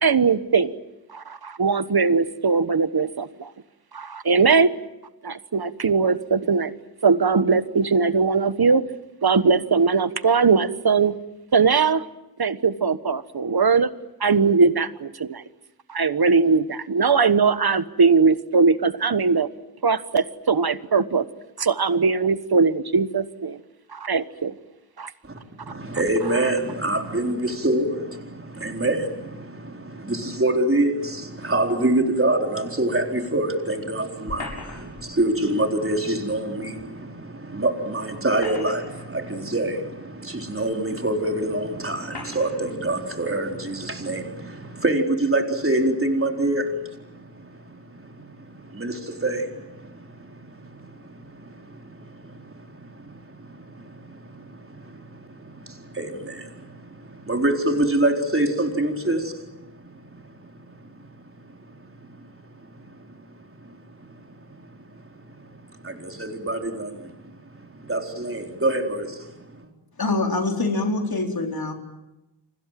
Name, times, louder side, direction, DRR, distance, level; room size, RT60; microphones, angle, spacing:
voice 1, 0.0-0.7 1.1-3.5 3.9-4.7 5.2-6.7 7.0-8.8 9.2-11.1 11.5-12.0 12.4-13.9 14.2-15.4 15.9-19.5 19.8-21.2 21.6-23.6 23.9-24.5 25.0-25.1, right 5 dB, 60° right, 13 dB, 1.3 m, -20 dB
voice 2, 25.7-60.5 60.8-61.1 61.6-61.7 62.7-63.1 63.6-64.1 64.5-64.6 64.9-65.1 65.4-65.5 65.8-69.7, right 1 dB, 30° right, 3 dB, 4.3 m, -26 dB
sound 1, 34.3-35.1 36.8-36.9 38.1-39.1 39.9-40.0 41.0-41.1 42.1-42.6, left 3 dB, 75° left, 8.0 m, -38 dB
voice 3, 70.0-71.7, left 2 dB, 60° left, 3 dB, 4.5 m, -24 dB
29.5 x 25.5 x 7.6 m, 0.96 s
wide cardioid pair, 70°, 41 cm